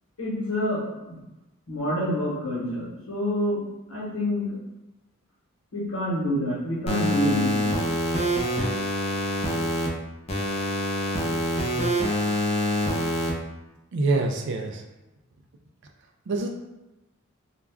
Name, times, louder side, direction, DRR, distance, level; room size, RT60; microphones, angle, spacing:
voice 1, 0.2-1.2 1.7-3.6 3.9-4.6 5.7-7.7, equal, 70° left, -5 dB, 1.0 m, -27 dB
sound 1, 6.9-9.9 10.3-13.3, equal, 30° left, 0.5 m, -25 dB
voice 2, 13.9-14.8 16.3-16.5, right 3 dB, 60° right, 3 dB, 0.4 m, -25 dB
2.3 x 2.2 x 3.4 m, 1.0 s
head